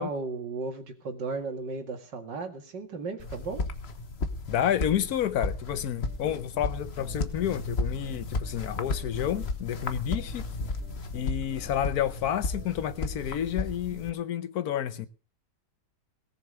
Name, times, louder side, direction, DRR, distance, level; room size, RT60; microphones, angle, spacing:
voice 1, 0.0-3.6 13.9-14.0, right 4 dB, 80° right, 2.7 m, -35 dB
sound 1, 3.2-14.1, left 3 dB, 40° left, 1.4 m, -34 dB
voice 2, 4.5-10.5 11.1-15.1, left 10 dB, 65° left, 1.3 m, -30 dB
sound 2, 5.7-13.4, right 1 dB, 5° right, 1.5 m, -51 dB
18.0 x 7.0 x 6.7 m
omnidirectional pair, 1.9 m